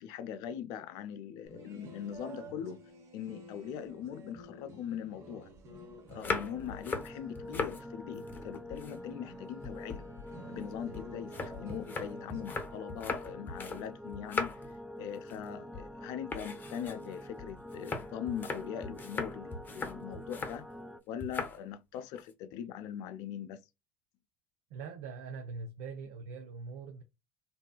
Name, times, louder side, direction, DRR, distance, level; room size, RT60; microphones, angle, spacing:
voice 1, 0.0-2.8 3.1-5.5 6.1-10.1 10.5-20.7 21.1-23.6, left 9 dB, 70° left, 0.4 m, -41 dB
sound 1, 1.5-12.6, right 1 dB, 50° right, 1.0 m, -52 dB
sound 2, 6.1-7.8 8.2-9.3 9.6-13.9 14.1-14.8 15.1-15.5 15.7-15.9 16.3-20.6 21.2-21.6 21.9-22.3, left 4 dB, 30° left, 0.7 m, -39 dB
sound 3, 6.5-21.0, left 1 dB, 5° right, 0.4 m, -46 dB
voice 2, 24.7-27.0, right 4 dB, 75° right, 0.4 m, -42 dB
2.7 x 2.3 x 2.2 m
hypercardioid pair, 80°, 7 cm